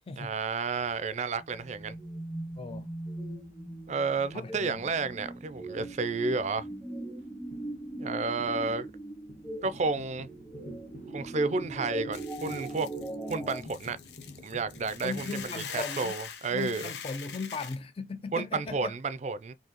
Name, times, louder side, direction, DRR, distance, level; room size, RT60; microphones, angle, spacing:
voice 1, 0.2-2.0 3.9-6.7 8.0-8.9 9.6-10.3 11.1-12.9 13.3-14.0 14.4-16.9 18.3-19.5, right 4 dB, 40° right, 0.4 m, -31 dB
sound 1, 0.6-15.5, left 2 dB, 45° left, 1.2 m, -52 dB
sound 2, 1.4-13.6, right 2 dB, 10° left, 0.8 m, -40 dB
voice 2, 2.6-2.9 4.3-4.9 15.0-16.2 16.5-18.9, left 4 dB, 30° left, 0.4 m, -38 dB
Hiss / Boiling, 12.1-17.8, left 7 dB, 70° left, 0.7 m, -43 dB
4.5 x 2.7 x 2.9 m
head